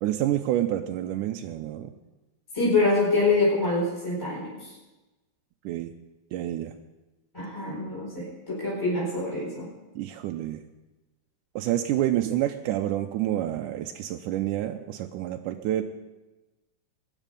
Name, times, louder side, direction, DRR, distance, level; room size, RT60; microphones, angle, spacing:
voice 1, 0.0-1.9 5.7-5.9 6.3-6.7 10.0-10.6 11.6-15.8, right 13 dB, 80° right, 3 dB, 2.1 m, -28 dB
voice 2, 2.5-4.6 7.3-9.7, left 2 dB, 5° left, -6 dB, 4.4 m, -25 dB
21.0 x 10.0 x 5.3 m, 1.1 s
omnidirectional pair, 3.9 m